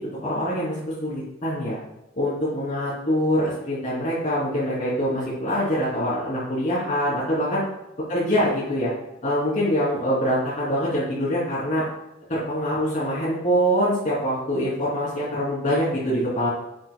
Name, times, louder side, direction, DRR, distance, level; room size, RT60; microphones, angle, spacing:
voice 1, 0.0-1.8 2.2-7.6 8.1-8.9 9.2-11.8 12.3-16.5, equal, 40° left, -9 dB, 3.2 m, -24 dB
11.0 x 8.6 x 2.3 m, 0.88 s
head